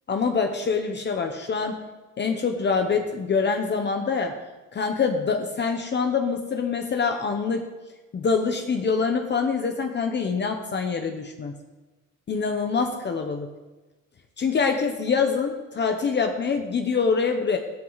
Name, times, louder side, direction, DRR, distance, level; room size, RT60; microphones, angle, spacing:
voice 1, 0.1-1.8 2.2-4.3 4.7-7.7 8.1-11.6 12.3-13.5 14.4-17.6, left 5 dB, 30° left, 4 dB, 1.0 m, -25 dB
17.0 x 13.0 x 4.1 m, 1.2 s
cardioid pair, 165°, 33 cm